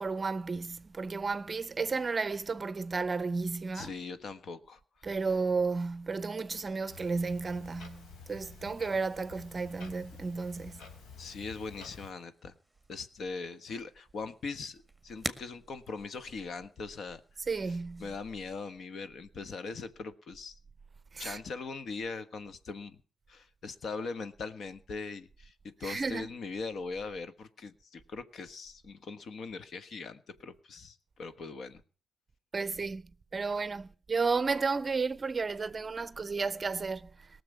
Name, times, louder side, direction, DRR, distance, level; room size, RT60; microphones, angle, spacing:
voice 1, 0.0-3.9 5.0-10.9 17.5-18.1 21.1-21.4 25.8-26.3 32.5-33.0 33.3-37.3, right 4 dB, 30° right, 0.6 m, -33 dB
voice 2, 3.7-4.8 11.2-12.5 12.9-17.2 18.0-20.6 21.2-22.9 23.3-31.8, left 4 dB, 55° left, 1.4 m, -41 dB
Clock, 6.9-12.1, left 5 dB, 80° left, 3.6 m, -50 dB
sound 1, 11.6-18.5, right 1 dB, ahead, 1.7 m, -48 dB
18.5 x 6.9 x 8.0 m
cardioid pair, 90°, 0 cm